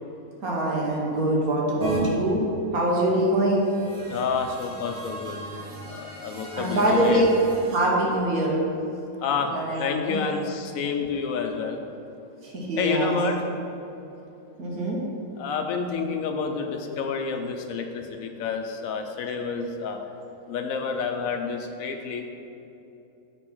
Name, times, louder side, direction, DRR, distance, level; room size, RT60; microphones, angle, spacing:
voice 1, 0.4-2.5 2.7-3.7 6.6-7.3 7.7-8.6 9.5-10.2 12.4-13.2 14.6-15.0 16.6-16.7, right 1 dB, 75° right, -3 dB, 1.8 m, -24 dB
sound 1, 1.8-2.0 3.4-7.8, right 2 dB, 50° right, 2.1 m, -37 dB
voice 2, 4.1-5.4 5.9-7.2 9.2-9.5 9.8-11.8 12.8-13.4 15.4-20.0 20.5-22.3, left 5 dB, 70° left, 5 dB, 1.0 m, -29 dB
7.8 x 3.4 x 6.0 m, 2.9 s
omnidirectional pair, 1.6 m